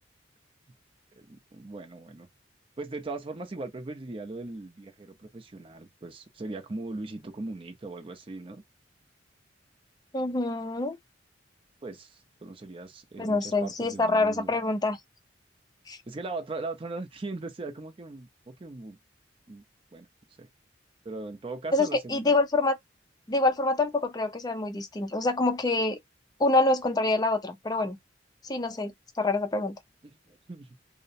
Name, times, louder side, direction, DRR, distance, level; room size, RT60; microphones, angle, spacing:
voice 1, 1.1-2.3 2.8-8.6 11.8-14.6 16.1-19.0 19.5-19.6 19.9-20.1 20.4-20.5 21.0-22.4 30.0-30.8, right 2 dB, 30° right, 0.5 m, -39 dB
voice 2, 10.1-11.0 13.2-15.0 15.9-16.0 21.7-22.8 23.3-26.0 26.4-28.0 28.4-29.8, left 2 dB, 20° left, 0.4 m, -26 dB
2.5 x 2.0 x 2.6 m
head